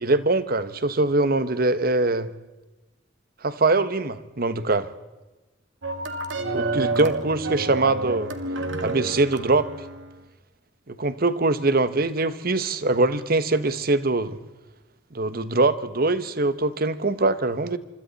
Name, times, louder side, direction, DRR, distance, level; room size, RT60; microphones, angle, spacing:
voice 1, 0.0-2.3 3.4-4.9 6.5-8.3 8.8-9.7 10.9-14.4 15.1-17.8, right 2 dB, 55° right, 13 dB, 1.2 m, -23 dB
sound 1, 5.8-10.2, right 2 dB, 85° right, 2.1 m, -29 dB
26.5 x 25.5 x 4.2 m, 1.1 s
head